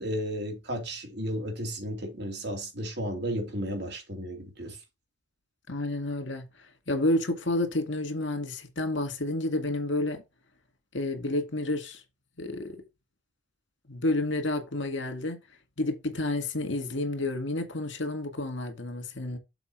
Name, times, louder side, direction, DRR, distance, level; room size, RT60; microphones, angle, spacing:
voice 1, 0.0-4.8, equal, 65° right, 2.9 m, -33 dB
voice 2, 5.7-6.5 6.9-10.2 10.9-12.0 12.4-12.8 13.9-15.4 15.8-19.4, left 2 dB, 90° left, 1.9 m, -30 dB
7.1 x 4.6 x 4.5 m
head